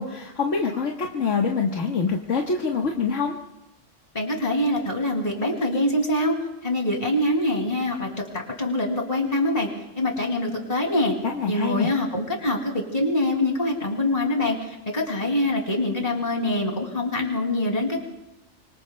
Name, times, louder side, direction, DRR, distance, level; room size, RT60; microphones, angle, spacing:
voice 1, 0.0-3.3 11.2-11.9, left 5 dB, 85° left, -1 dB, 1.6 m, -25 dB
voice 2, 4.1-6.3 6.6-9.7 9.9-11.1 11.5-18.0, left 1 dB, 30° left, 1 dB, 2.8 m, -24 dB
25.5 x 25.0 x 2.2 m, 0.90 s
omnidirectional pair, 1.2 m